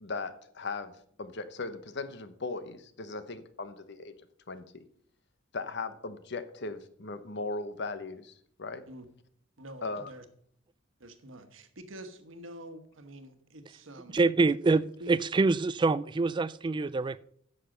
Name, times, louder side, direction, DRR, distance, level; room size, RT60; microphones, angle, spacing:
voice 1, 0.0-4.1 4.5-4.6 5.5-8.3 8.6-8.8 9.8-10.1, left 3 dB, 60° left, 12 dB, 1.0 m, -38 dB
voice 2, 9.6-10.2 11.0-14.2 15.0-15.2, right 1 dB, 80° right, 9 dB, 1.4 m, -47 dB
voice 3, 14.1-17.2, right 3 dB, 25° right, 17 dB, 0.3 m, -26 dB
10.0 x 6.6 x 6.5 m, 0.64 s
head